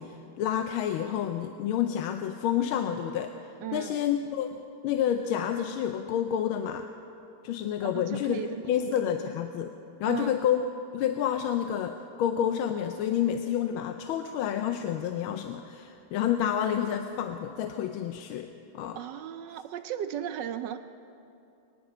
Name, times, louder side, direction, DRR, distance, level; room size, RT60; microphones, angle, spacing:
voice 1, 0.0-3.3 3.7-6.9 7.4-8.4 8.7-9.7 10.0-10.6 10.9-19.0, left 9 dB, 80° left, 7 dB, 1.4 m, -29 dB
voice 2, 3.6-4.0 7.8-8.6 10.0-10.4 19.0-20.8, right 10 dB, 75° right, 9 dB, 1.0 m, -36 dB
23.0 x 10.5 x 5.5 m, 2.7 s
omnidirectional pair, 2.3 m